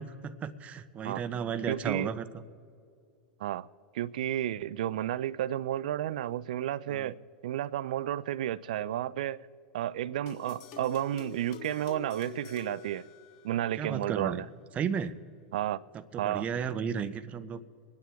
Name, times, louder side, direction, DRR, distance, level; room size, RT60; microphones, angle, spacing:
voice 1, 0.0-2.4 6.9-7.1 13.8-14.4 14.7-15.1 16.1-17.6, right 7 dB, 30° right, 0.8 m, -34 dB
voice 2, 1.7-2.1 3.4-3.7 3.9-7.1 7.4-9.4 9.7-13.0 13.4-14.5 15.5-15.8 16.2-16.5, right 12 dB, 70° right, 0.4 m, -32 dB
sound 1, 10.3-13.7, left 8 dB, 55° left, 2.0 m, -47 dB
27.0 x 9.6 x 3.5 m
hypercardioid pair, 100°, 4 cm